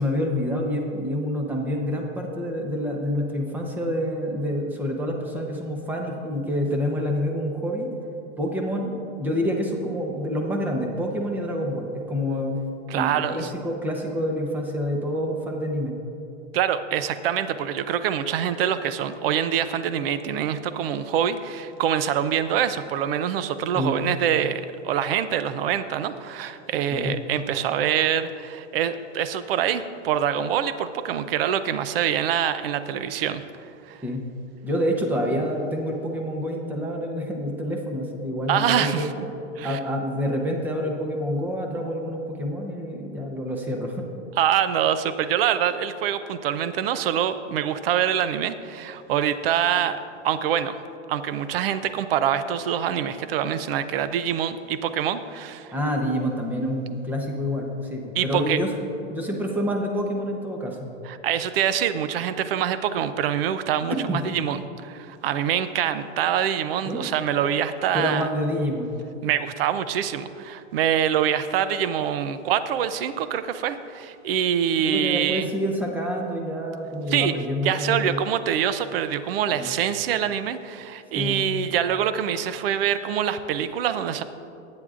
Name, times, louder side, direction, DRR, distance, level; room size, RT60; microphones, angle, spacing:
voice 1, 0.0-7.9 8.4-8.9 9.2-12.6 12.9-15.9 23.7-23.9 26.9-27.2 34.0-34.2 34.6-39.1 39.6-44.1 55.7-58.7 59.1-60.9 64.1-64.2 66.8-67.0 67.9-68.9 74.8-78.3 79.5-79.7 81.2-81.4, equal, 5° right, 1 dB, 0.7 m, -27 dB
voice 2, 12.9-13.5 16.5-33.4 33.9-34.0 38.5-39.1 39.6-39.8 44.4-50.0 50.2-50.7 51.1-55.7 58.1-58.6 61.0-68.3 69.2-75.5 77.1-77.3 77.6-84.2, right 9 dB, 50° right, 12 dB, 0.6 m, -25 dB
20.5 x 9.6 x 2.5 m, 2.7 s
supercardioid pair, 160°, 37 cm